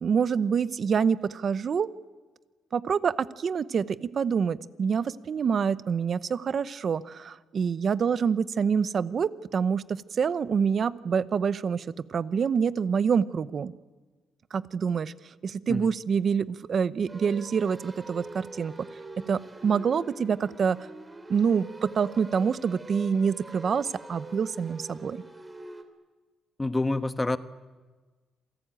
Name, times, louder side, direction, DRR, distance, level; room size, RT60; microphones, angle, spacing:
voice 1, 0.0-1.9 2.7-13.7 14.5-15.1 15.4-18.7 19.2-20.9 21.3-25.2, right 6 dB, 45° right, 15 dB, 0.8 m, -26 dB
sound 1, 17.1-25.8, right 2 dB, 15° right, 2.9 m, -44 dB
voice 2, 26.6-27.4, left 2 dB, 15° left, 11 dB, 1.1 m, -27 dB
27.5 x 19.0 x 9.0 m, 1.3 s
cardioid pair, 125°, 0 cm